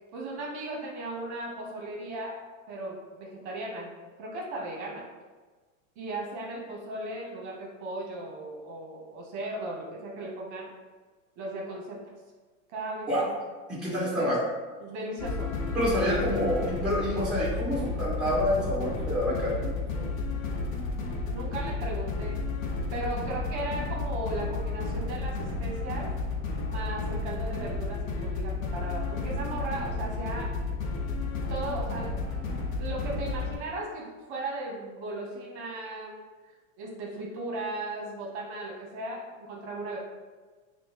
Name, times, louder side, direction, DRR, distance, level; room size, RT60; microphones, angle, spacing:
voice 1, 0.1-3.9 4.2-5.0 6.0-10.7 11.4-12.0 12.7-13.4 14.2-14.4 14.8-15.6 21.3-22.4 22.9-26.1 26.7-30.5 31.5-32.4 32.8-36.2 36.8-40.0, right 2 dB, 55° right, -2 dB, 0.9 m, -36 dB
voice 2, 13.7-14.4 15.7-20.1, equal, ahead, -7 dB, 1.3 m, -28 dB
sound 1, 15.2-33.6, left 3 dB, 80° left, 0.8 m, -32 dB
6.0 x 2.1 x 3.0 m, 1.4 s
supercardioid pair, 145°, 40 cm